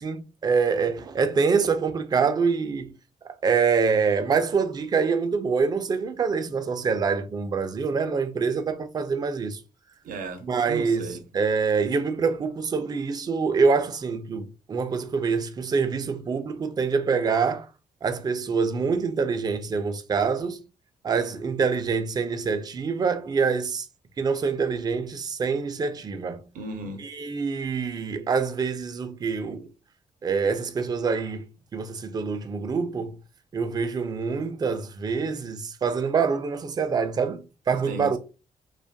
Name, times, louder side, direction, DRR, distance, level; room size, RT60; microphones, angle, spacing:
voice 1, 0.0-3.0 3.4-9.6 10.4-17.7 18.0-20.6 21.0-23.9 24.2-26.5 27.0-29.7 30.2-33.1 33.5-38.2, right 5 dB, 30° right, 0.3 m, -25 dB
voice 2, 10.0-11.2 26.5-27.0 37.9-38.2, right 3 dB, 85° right, 0.6 m, -35 dB
2.4 x 2.2 x 2.6 m
cardioid pair, 110°, 14 cm